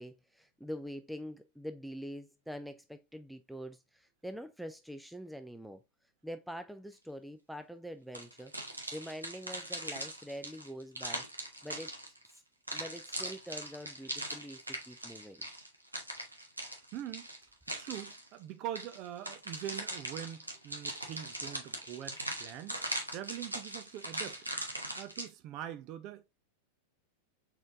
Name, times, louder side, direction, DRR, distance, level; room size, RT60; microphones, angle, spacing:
voice 1, 0.0-5.8 6.2-8.5 8.9-11.2 11.6-11.9 12.7-15.5, equal, ahead, 0.4 m, -44 dB
sound 1, 8.1-12.3 12.7-18.3 18.7-25.3, right 1 dB, 85° right, 1.0 m, -40 dB
voice 2, 16.9-17.3 17.7-24.4 25.0-26.2, right 11 dB, 40° right, 0.7 m, -43 dB
4.6 x 4.2 x 2.5 m
figure-of-eight pair, 90°, 0 cm